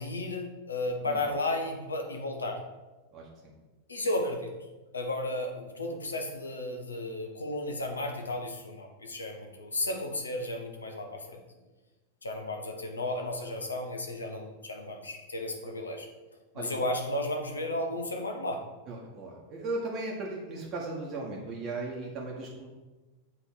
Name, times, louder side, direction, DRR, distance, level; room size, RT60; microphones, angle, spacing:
voice 1, 0.0-2.6 3.9-4.5 4.9-11.4 12.2-16.1 16.5-18.6, left 1 dB, 75° left, 4 dB, 0.9 m, -33 dB
voice 2, 3.1-3.5 16.5-16.7 18.9-22.7, right 2 dB, 30° right, -3 dB, 1.1 m, -37 dB
7.3 x 3.4 x 4.6 m, 1.2 s
figure-of-eight pair, 90°, 0 cm